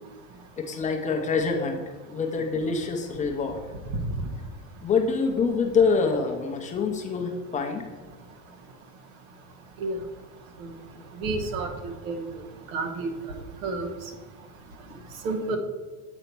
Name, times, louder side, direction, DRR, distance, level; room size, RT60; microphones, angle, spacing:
voice 1, 0.6-3.6 4.8-7.8, left 5 dB, 20° left, 3 dB, 0.5 m, -26 dB
voice 2, 11.2-12.2 12.7-13.1 13.6-13.9 15.2-15.6, right 3 dB, 85° right, 5 dB, 1.2 m, -30 dB
7.8 x 4.1 x 4.5 m, 1.3 s
cardioid pair, 155°, 40 cm